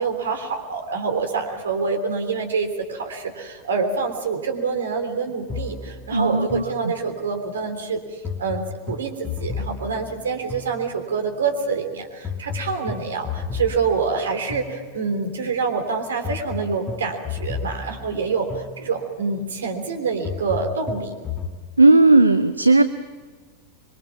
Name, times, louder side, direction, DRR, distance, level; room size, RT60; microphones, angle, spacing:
voice 1, 0.0-21.1, right 5 dB, 65° right, 5 dB, 3.3 m, -26 dB
sound 1, 5.5-7.4 8.2-11.3 12.2-15.3 16.2-19.3 20.2-21.6, left 5 dB, 20° left, 1.4 m, -33 dB
voice 2, 6.1-6.6 21.8-22.8, right 2 dB, 80° right, 11 dB, 0.7 m, -15 dB
26.0 x 23.0 x 6.0 m, 1.5 s
figure-of-eight pair, 90°, 0 cm